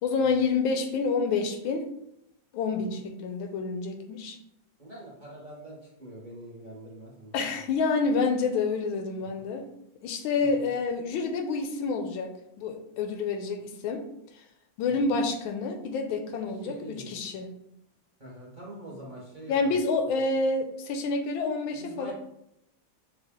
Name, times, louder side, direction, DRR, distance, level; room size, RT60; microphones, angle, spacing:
voice 1, 0.0-1.8 2.5-4.4 7.3-9.7 10.0-12.3 12.6-14.0 14.8-16.8 17.1-17.5 19.5-22.1, left 4 dB, 90° left, 6 dB, 1.4 m, -28 dB
voice 2, 4.8-7.6 9.2-9.5 10.4-10.7 14.9-15.1 16.4-17.2 18.2-20.2 21.7-22.1, right 1 dB, 35° right, -5 dB, 0.8 m, -45 dB
5.8 x 2.4 x 3.6 m, 0.81 s
omnidirectional pair, 2.1 m